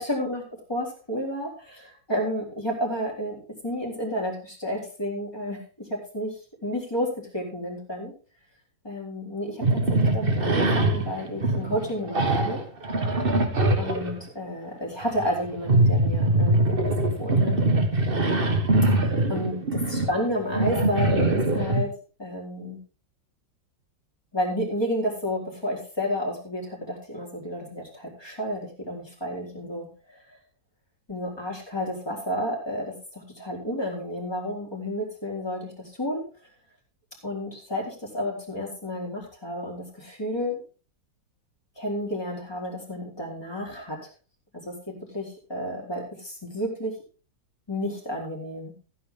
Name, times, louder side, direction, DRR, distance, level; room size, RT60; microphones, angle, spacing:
voice 1, 0.1-0.4 0.7-5.6 5.9-6.4 6.6-7.1 7.3-8.1 8.8-12.6 13.8-17.6 18.9-21.9 22.2-22.8 24.3-30.2 31.1-36.2 37.2-40.6 41.8-44.0 44.6-46.9 47.7-48.7, equal, 10° left, -2 dB, 4.4 m, -31 dB
sound 1, 9.6-14.2 15.0-21.8, right 2 dB, 30° right, 1.7 m, -23 dB
15.5 x 9.5 x 3.8 m, 0.37 s
omnidirectional pair, 2.1 m